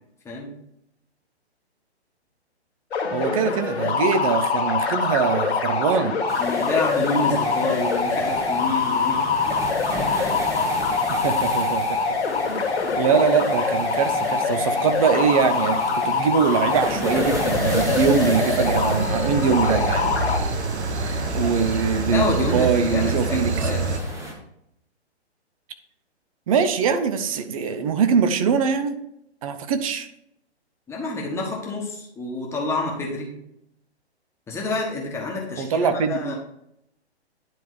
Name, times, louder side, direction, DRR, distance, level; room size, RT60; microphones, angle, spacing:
sound 1, 2.9-20.4, left 4 dB, 65° left, 1.8 m, -24 dB
voice 1, 3.1-6.2 11.1-12.0 13.0-20.1 20.4-20.5 21.3-23.7 26.5-28.9 29.4-30.1 35.6-36.3, right 6 dB, 30° right, 9 dB, 0.6 m, -22 dB
sound 2, 6.3-24.3, right 1 dB, 10° right, 0.9 m, -35 dB
voice 2, 6.4-9.2 22.1-24.0 30.9-33.3 34.5-36.3, left 2 dB, 10° left, -2 dB, 1.2 m, -28 dB
sound 3, 17.5-24.0, right 3 dB, 75° right, 1.0 m, -26 dB
10.5 x 3.5 x 4.6 m, 0.77 s
hypercardioid pair, 140°, 34 cm